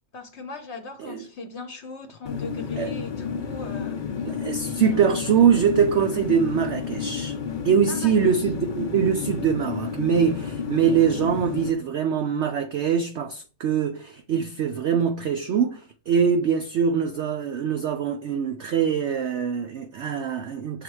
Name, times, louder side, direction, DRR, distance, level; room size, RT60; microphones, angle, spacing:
voice 1, 0.1-4.0 4.6-5.3 7.9-8.5, left 2 dB, 50° left, 0.9 m, -39 dB
sound 1, 2.3-11.7, left 6 dB, 80° left, 0.4 m, -31 dB
voice 2, 4.2-7.4 7.6-20.8, right 7 dB, 75° right, 0.6 m, -23 dB
6.6 x 3.8 x 4.7 m
omnidirectional pair, 1.8 m